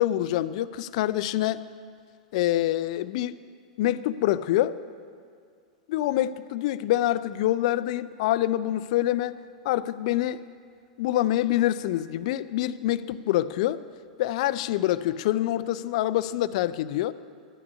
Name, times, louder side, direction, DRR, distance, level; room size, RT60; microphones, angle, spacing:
voice 1, 0.0-1.6 2.3-3.4 3.8-4.8 5.9-9.4 9.6-10.4 11.0-13.8 14.2-17.1, left 14 dB, 60° left, 15 dB, 0.4 m, -26 dB
12.0 x 6.0 x 8.4 m, 2.2 s
hypercardioid pair, 105°, 4 cm